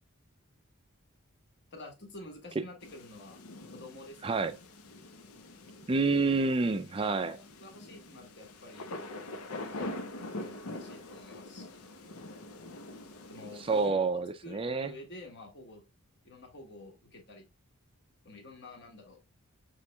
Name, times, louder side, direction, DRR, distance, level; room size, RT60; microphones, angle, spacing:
voice 1, 1.7-3.4 3.7-4.4 7.0-8.9 9.2-10.0 10.4-11.9 13.3-15.8 16.2-17.5 18.2-19.2, left 2 dB, 50° left, 1.4 m, -49 dB
sound 1, 2.8-13.9, left 2 dB, 80° left, 0.7 m, -44 dB
voice 2, 4.2-4.5 5.9-7.4 13.6-14.9, right 3 dB, 25° right, 0.4 m, -28 dB
5.9 x 3.2 x 2.2 m
head